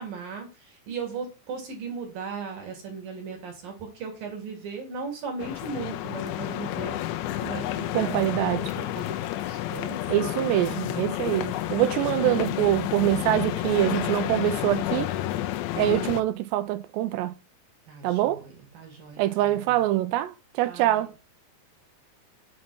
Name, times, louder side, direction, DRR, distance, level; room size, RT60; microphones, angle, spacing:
voice 1, 0.0-7.0 7.4-8.2 8.7-10.3 11.0-11.5 17.9-19.8 20.6-21.1, right 5 dB, 55° right, 3.4 m, -37 dB
sound 1, 5.4-16.2, left 14 dB, 85° left, 3.0 m, -30 dB
voice 2, 7.9-8.7 10.1-15.1 15.8-17.3 18.0-18.4 19.2-21.1, right 14 dB, 80° right, 2.6 m, -24 dB
7.6 x 4.2 x 6.1 m
omnidirectional pair, 5.2 m